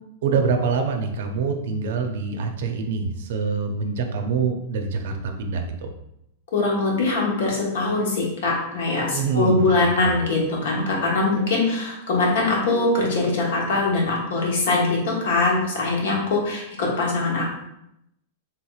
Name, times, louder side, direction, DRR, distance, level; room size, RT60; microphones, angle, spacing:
voice 1, 0.2-5.9 9.1-10.1, right 5 dB, 65° right, 5 dB, 0.5 m, -25 dB
voice 2, 6.5-17.5, left 3 dB, 75° left, -2 dB, 1.2 m, -22 dB
3.4 x 3.0 x 2.4 m, 0.81 s
supercardioid pair, 150°, 0 cm